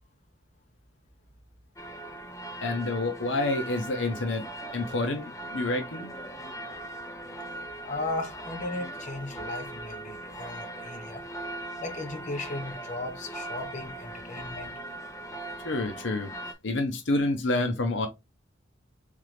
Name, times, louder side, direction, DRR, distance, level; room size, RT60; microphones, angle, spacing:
sound 1, 1.8-16.5, right 1 dB, 15° left, 0.6 m, -40 dB
voice 1, 2.6-4.4 4.7-6.1 15.6-16.3 16.6-18.1, left 2 dB, 70° left, 0.8 m, -28 dB
voice 2, 7.8-11.2 11.8-14.7, left 2 dB, 40° left, 0.9 m, -36 dB
3.7 x 3.7 x 3.2 m
head